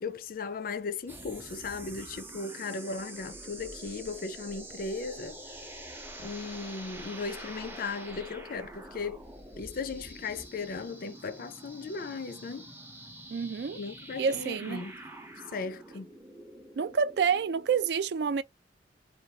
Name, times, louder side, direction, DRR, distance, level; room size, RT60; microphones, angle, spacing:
voice 1, 0.0-5.9 6.2-9.2 9.6-12.7 13.7-15.0 15.5-16.1, left 4 dB, 50° left, 0.4 m, -37 dB
sound 1, 1.1-17.9, right 1 dB, 10° right, 0.6 m, -46 dB
voice 2, 13.3-13.8 14.2-14.8 16.8-18.4, right 6 dB, 65° right, 0.4 m, -28 dB
2.6 x 2.3 x 2.8 m
head